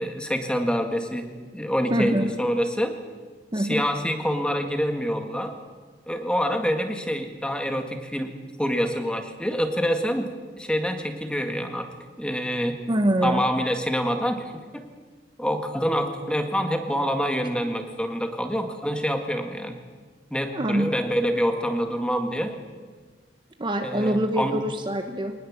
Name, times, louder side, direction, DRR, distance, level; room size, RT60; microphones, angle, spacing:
voice 1, 0.0-3.0 3.5-5.6 6.1-10.3 10.6-11.9 12.2-12.8 13.2-14.9 15.4-19.8 20.3-22.6 23.8-24.6, equal, 5° left, 5 dB, 1.9 m, -26 dB
voice 2, 1.9-2.3 3.5-3.8 12.9-13.4 20.5-20.9 23.6-25.3, right 1 dB, 25° right, 6 dB, 1.1 m, -24 dB
23.5 x 19.5 x 7.4 m, 1.5 s
head